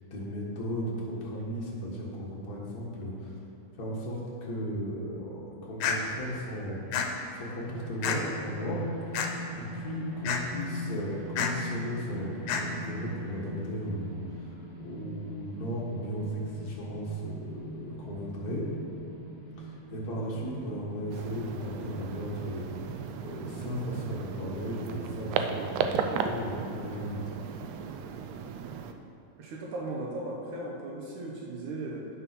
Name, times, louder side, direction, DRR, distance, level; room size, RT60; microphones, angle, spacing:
voice 1, 0.1-3.4 3.7-6.8 7.3-8.9 9.1-9.4 9.7-18.7 19.6-22.8 23.2-27.4, equal, 40° left, -5 dB, 1.4 m, -36 dB
sound 1, 5.8-6.0 6.9-7.1 8.0-8.2 9.1-9.3 10.2-10.4 11.4-11.5 12.5-12.6, left 7 dB, 80° left, 2.2 m, -28 dB
sound 2, 7.5-24.2, equal, 50° right, 3.3 m, -42 dB
sound 3, 21.1-28.9, right 6 dB, 90° right, 1.6 m, -35 dB
voice 2, 29.4-32.1, right 2 dB, 70° right, -2 dB, 2.2 m, -37 dB
9.3 x 5.8 x 6.0 m, 2.9 s
omnidirectional pair, 4.0 m